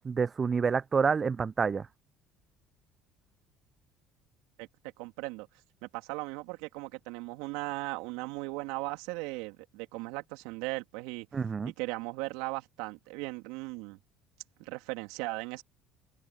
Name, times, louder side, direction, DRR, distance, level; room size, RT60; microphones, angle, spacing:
voice 1, 0.0-1.9 11.3-11.7, right 5 dB, 35° right, 0.6 m, -28 dB
voice 2, 5.0-5.5 5.8-11.3 11.6-14.0 14.6-15.6, right 24 dB, 75° right, 3.3 m, -37 dB
open air
hypercardioid pair, 65°, 0 cm